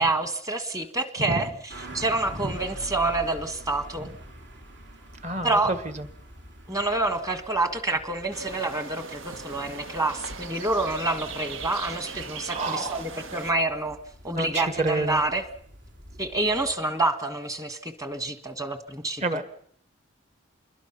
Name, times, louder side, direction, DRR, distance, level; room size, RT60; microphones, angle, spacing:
voice 1, 0.0-4.1 5.4-5.7 6.7-14.0 14.2-15.4 16.2-19.4, right 2 dB, 15° right, 1.5 m, -27 dB
sound 1, 1.7-16.8, right 1 dB, 65° right, 3.6 m, -46 dB
voice 2, 5.2-6.1 12.5-13.0 14.4-15.2 19.2-19.4, right 2 dB, 35° right, 1.8 m, -29 dB
sound 2, 8.3-13.5, right 4 dB, 85° right, 1.6 m, -39 dB
27.5 x 21.5 x 5.9 m
head